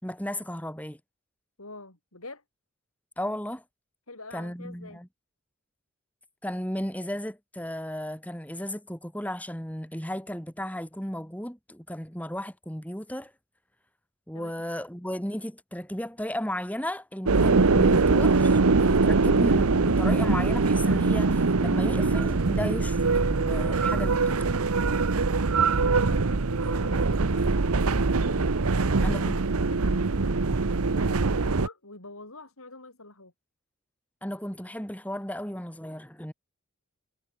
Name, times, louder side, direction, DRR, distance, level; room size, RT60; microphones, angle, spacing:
voice 1, 0.0-1.0 3.2-3.6 4.3-5.1 6.4-13.3 14.3-24.4 29.0-29.4 34.2-36.3, equal, 5° left, 4.1 m, -34 dB
voice 2, 1.6-2.4 4.1-5.0 14.3-14.5 25.6-28.4 28.7-30.4 30.9-33.3, left 2 dB, 80° left, 7.4 m, -45 dB
sound 1, 17.3-31.7, right 3 dB, 85° right, 0.9 m, -23 dB
head